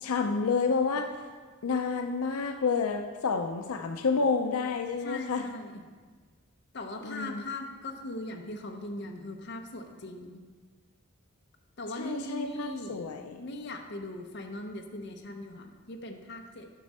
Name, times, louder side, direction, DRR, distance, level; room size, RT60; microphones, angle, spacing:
voice 1, 0.0-1.1 1.6-5.5 7.0-7.4 12.0-13.4, left 4 dB, 85° left, 5 dB, 0.5 m, -29 dB
voice 2, 5.0-5.8 6.7-10.4 11.8-13.1 13.4-16.7, left 1 dB, 50° left, 3 dB, 0.8 m, -40 dB
9.8 x 6.0 x 4.2 m, 1.4 s
head